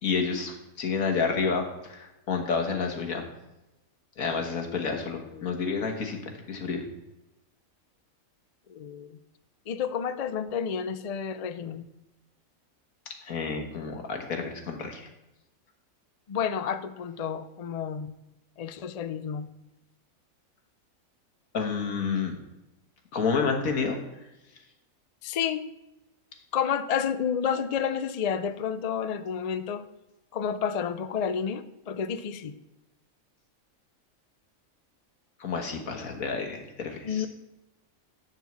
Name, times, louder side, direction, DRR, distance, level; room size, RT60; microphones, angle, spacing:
voice 1, 0.0-3.2 4.2-6.2 6.5-6.8 13.2-15.1 21.5-22.4 23.1-24.0 35.4-37.3, left 5 dB, 80° left, 3 dB, 1.8 m, -29 dB
voice 2, 8.7-9.2 9.7-11.8 16.3-18.1 18.6-19.5 25.2-25.7 26.5-29.9 30.3-32.5 37.0-37.3, left 7 dB, 65° left, 12 dB, 0.3 m, -30 dB
10.5 x 4.6 x 7.3 m, 0.96 s
omnidirectional pair, 1.5 m